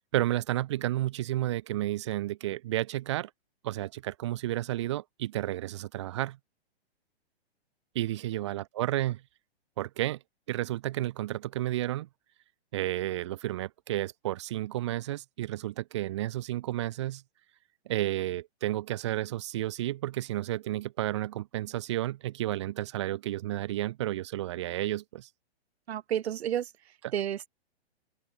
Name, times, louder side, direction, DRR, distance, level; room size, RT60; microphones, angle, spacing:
voice 1, 0.1-3.3 3.6-6.4 7.9-9.2 9.8-10.2 10.5-12.1 12.7-17.2 17.9-25.3 27.0-27.1, right 14 dB, 25° right, 0.6 m, -31 dB
voice 2, 25.9-27.5, right 10 dB, 75° right, 1.2 m, -32 dB
open air
hypercardioid pair, 170°, 32 cm